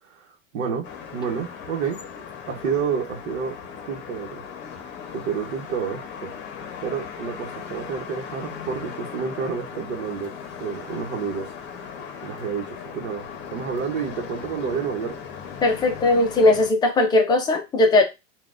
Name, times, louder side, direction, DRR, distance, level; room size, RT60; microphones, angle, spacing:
voice 1, 0.0-2.0 2.5-3.6 3.9-4.4 5.1-6.3 6.8-10.3 10.6-11.5 12.2-15.2, right 6 dB, 70° right, 1.1 m, -29 dB
sound 1, 0.8-16.7, left 7 dB, 25° left, 0.8 m, -38 dB
voice 2, 15.6-18.0, left 2 dB, 10° left, 0.4 m, -18 dB
5.8 x 2.3 x 2.5 m
supercardioid pair, 140°, 40 cm